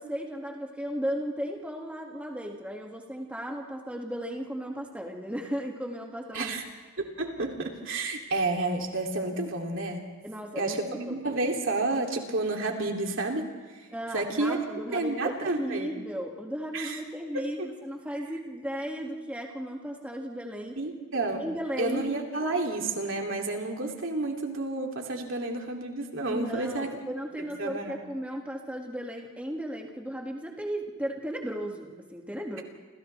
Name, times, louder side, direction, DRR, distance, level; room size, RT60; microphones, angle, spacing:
voice 1, 0.0-6.6 10.2-11.2 13.9-20.8 21.4-22.1 26.3-32.6, equal, 5° right, 0 dB, 2.1 m, -35 dB
voice 2, 7.0-10.1 10.6-13.5 14.1-14.6 14.9-15.9 16.7-17.0 17.3-17.7 20.8-21.5 21.8-26.9 27.6-28.0, right 2 dB, 65° right, 1 dB, 2.8 m, -30 dB
29.0 x 27.5 x 3.4 m, 1.4 s
head